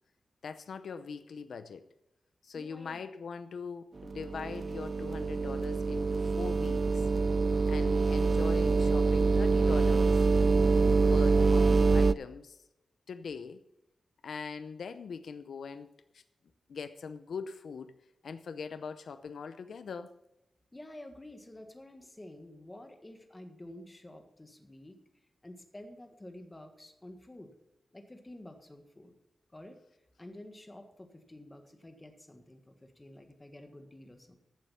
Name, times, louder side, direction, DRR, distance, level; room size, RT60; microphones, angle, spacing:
voice 1, 0.4-1.9 2.4-7.1 7.7-10.3 11.0-12.6 13.1-13.6 14.2-16.2 16.7-18.0 18.2-20.1, left 5 dB, 75° left, 11 dB, 0.6 m, -41 dB
voice 2, 2.5-3.0 20.7-25.0 25.4-27.5 27.9-29.1 29.5-29.8 30.2-34.4, left 1 dB, 15° left, 5 dB, 1.6 m, -50 dB
sound 1, 4.0-12.1, right 4 dB, 35° right, 0.3 m, -25 dB
15.0 x 7.7 x 5.6 m, 0.89 s
wide cardioid pair, 155°, 0 cm